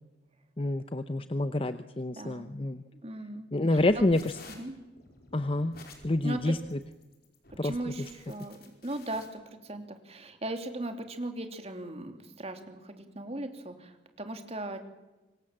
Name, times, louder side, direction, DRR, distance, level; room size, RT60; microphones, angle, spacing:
voice 1, 0.6-2.8 3.5-4.2 5.3-5.8 6.0-6.8 7.6-7.7, left 2 dB, 30° left, 11 dB, 0.8 m, -28 dB
voice 2, 2.2-2.5 3.0-4.0 4.6-4.7 6.2-6.4 7.5-14.8, right 1 dB, 35° right, 6 dB, 2.8 m, -38 dB
sound 1, 3.9-9.3, left 3 dB, 55° left, 4.8 m, -52 dB
25.5 x 23.0 x 7.4 m, 1.1 s
head